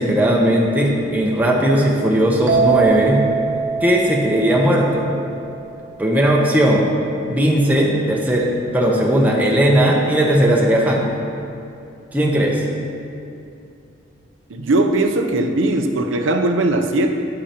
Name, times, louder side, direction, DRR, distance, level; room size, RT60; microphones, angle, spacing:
voice 1, 0.0-3.2 3.8-5.2 6.0-6.9 7.3-8.5 8.7-11.1 12.1-12.6, right 1 dB, 10° right, -3 dB, 0.8 m, -17 dB
sound 1, 2.5-6.1, right 6 dB, 75° right, 1.0 m, -23 dB
voice 2, 14.5-17.3, right 2 dB, 90° right, 6 dB, 0.6 m, -19 dB
9.8 x 8.4 x 2.9 m, 2.6 s
head